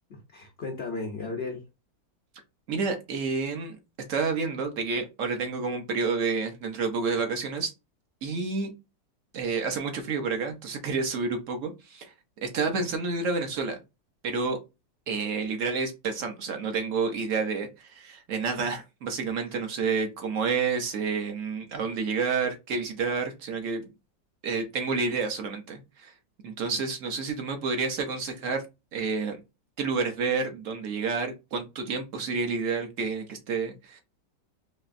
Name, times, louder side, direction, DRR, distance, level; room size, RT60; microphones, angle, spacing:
voice 1, 0.1-1.6 19.5-19.7, left 3 dB, 70° left, 0.6 m, -35 dB
voice 2, 2.7-3.8 4.1-7.7 8.2-8.7 9.3-12.1 12.4-13.8 14.2-14.6 15.1-23.8 24.4-26.1 26.4-28.6 28.9-29.4 29.8-34.0, right 4 dB, 60° right, 0.9 m, -29 dB
4.2 x 3.0 x 2.5 m
omnidirectional pair, 1.9 m